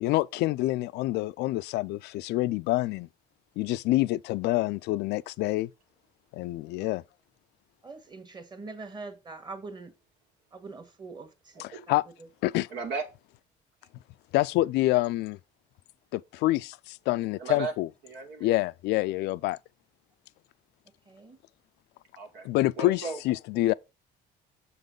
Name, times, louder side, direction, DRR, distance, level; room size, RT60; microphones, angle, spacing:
voice 1, 0.0-3.1 3.6-5.7 6.3-7.0 11.6-12.0 12.4-12.7 14.3-15.4 16.1-17.9 18.4-19.6 22.4-23.7, left 17 dB, 80° left, 0.4 m, -27 dB
voice 2, 7.8-9.9 10.5-11.6 11.9-12.3 21.1-21.4, right 3 dB, 25° right, 1.6 m, -43 dB
voice 3, 12.7-13.0 17.4-17.7 18.0-18.5 22.2-22.5 22.8-23.2, right 3 dB, 85° right, 2.4 m, -35 dB
7.3 x 3.9 x 5.2 m
cardioid pair, 110°, 17 cm